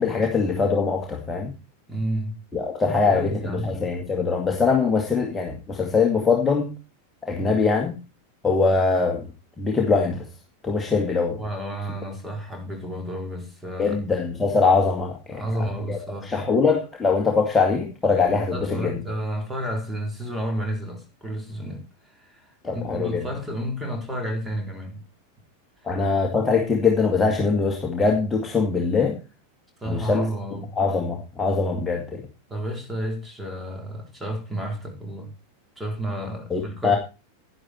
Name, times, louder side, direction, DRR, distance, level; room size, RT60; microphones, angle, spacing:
voice 1, 0.0-1.5 2.5-6.7 7.2-7.9 8.4-9.3 9.6-10.3 10.6-11.4 13.8-19.0 22.6-23.3 25.8-29.1 29.8-30.3 30.8-32.2 36.5-37.0, left 4 dB, 15° left, 2.1 m, -22 dB
voice 2, 1.9-2.4 2.9-3.8 7.4-7.7 11.4-14.0 15.3-16.5 18.5-21.8 22.2-25.0 26.2-26.3 29.8-30.7 32.5-35.3 35.8-37.0, equal, 10° right, 4.2 m, -31 dB
11.0 x 10.5 x 4.5 m
figure-of-eight pair, 90°, 0 cm